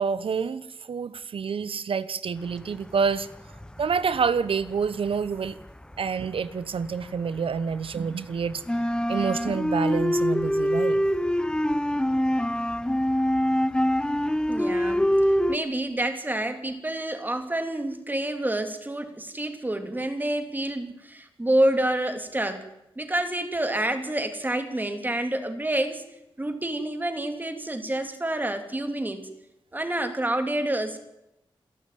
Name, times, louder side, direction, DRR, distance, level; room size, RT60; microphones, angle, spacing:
voice 1, 0.0-3.3 3.8-5.6 6.0-8.6 9.1-11.0, right 5 dB, 75° right, 1.0 m, -27 dB
sound 1, 2.9-3.8 4.1-7.0 7.4-15.6, equal, 10° left, 0.9 m, -25 dB
voice 2, 14.5-15.1 15.5-22.7 23.0-26.0 26.4-29.3 29.7-31.0, right 1 dB, 20° right, 3.0 m, -28 dB
27.5 x 12.0 x 9.4 m
wide cardioid pair, 80°, 9 cm